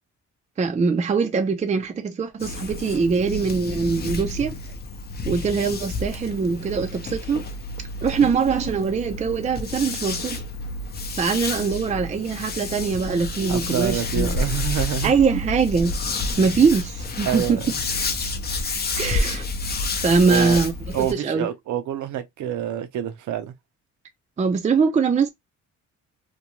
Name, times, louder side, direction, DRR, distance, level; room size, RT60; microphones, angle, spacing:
voice 1, 0.6-4.5 5.2-7.4 8.0-10.4 11.2-14.3 15.0-16.0 16.4-17.6 19.0-19.4 20.0-20.7 21.1-21.5 24.4-25.3, right 5 dB, 25° right, 0.4 m, -22 dB
sound 1, 2.4-21.1, left 3 dB, 35° left, 0.6 m, -30 dB
voice 2, 13.5-15.1 17.2-17.8 20.3-20.6 20.9-23.5, right 10 dB, 75° right, 0.7 m, -27 dB
2.6 x 2.2 x 2.9 m
cardioid pair, 90°, 30 cm